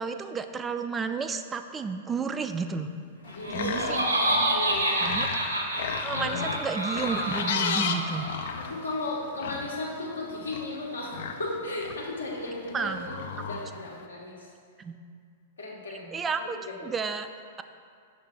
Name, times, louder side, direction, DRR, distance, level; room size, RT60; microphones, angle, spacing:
voice 1, 0.0-2.9 3.5-4.0 5.0-5.3 6.0-8.3 12.7-13.1 14.8-15.0 16.1-17.3, right 5 dB, 15° right, 8 dB, 0.3 m, -31 dB
sound 1, 3.2-14.1, left 6 dB, 55° left, 0.4 m, -36 dB
voice 2, 3.3-5.0 6.1-6.5 8.7-12.9 13.4-14.3 15.6-16.1 16.4-16.9, left 2 dB, 75° left, -3 dB, 1.3 m, -35 dB
Laughter, 3.3-8.5, right 1 dB, 80° right, 1.0 m, -28 dB
6.4 x 3.2 x 6.0 m, 2.2 s
figure-of-eight pair, 100°, 0 cm